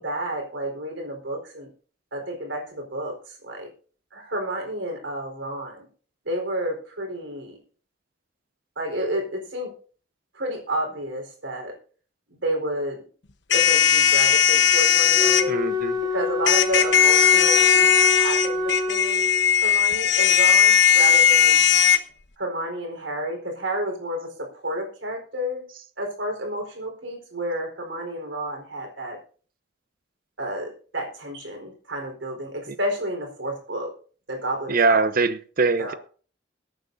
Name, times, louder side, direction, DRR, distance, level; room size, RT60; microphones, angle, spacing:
voice 1, 0.0-1.7 2.1-3.7 4.1-5.8 6.3-7.6 8.8-9.7 10.3-11.7 12.4-13.0 13.5-15.6 16.1-19.2 19.5-21.6 22.4-25.6 26.0-29.2 30.4-33.9 34.3-35.0 35.8-36.0, right 1 dB, 80° right, 4.4 m, -31 dB
sound 1, 13.5-15.4 16.5-22.0, left 8 dB, 70° left, 1.1 m, -17 dB
Wind instrument woodwind instrument, 15.1-19.6, left 2 dB, 25° right, 3.0 m, -26 dB
voice 2, 15.5-16.0 32.7-32.8 34.7-35.9, right 4 dB, 50° right, 0.9 m, -22 dB
22.5 x 8.9 x 2.7 m
head